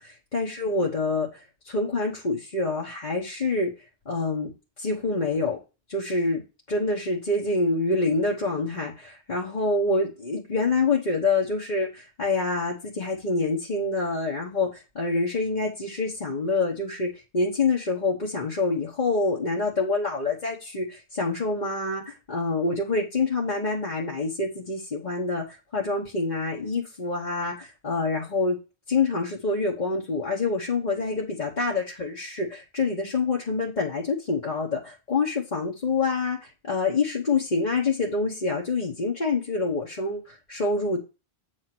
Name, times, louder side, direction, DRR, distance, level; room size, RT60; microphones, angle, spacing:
voice 1, 0.0-3.7 4.0-4.5 4.8-5.6 5.9-6.4 6.7-28.6 28.9-41.0, left 3 dB, 45° left, -3 dB, 1.3 m, -26 dB
8.6 x 3.3 x 6.0 m, 0.29 s
omnidirectional pair, 1.1 m